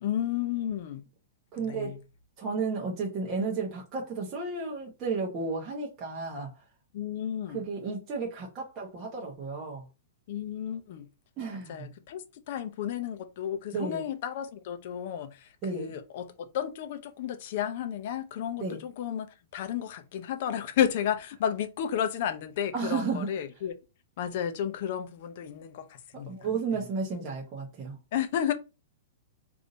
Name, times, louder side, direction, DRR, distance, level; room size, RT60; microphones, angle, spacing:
voice 1, 0.0-1.0 1.6-2.0 6.9-7.6 10.3-11.1 11.7-12.2 12.5-23.7 24.2-26.4 28.1-28.5, left 9 dB, 45° left, 0.6 m, -32 dB
voice 2, 1.5-2.0 2.4-6.5 7.5-9.8 11.4-11.8 13.7-14.0 15.6-15.9 18.6-18.8 22.7-23.3 26.3-28.0, right 4 dB, 20° right, 0.9 m, -33 dB
3.6 x 2.6 x 3.9 m
hypercardioid pair, 165°, 0 cm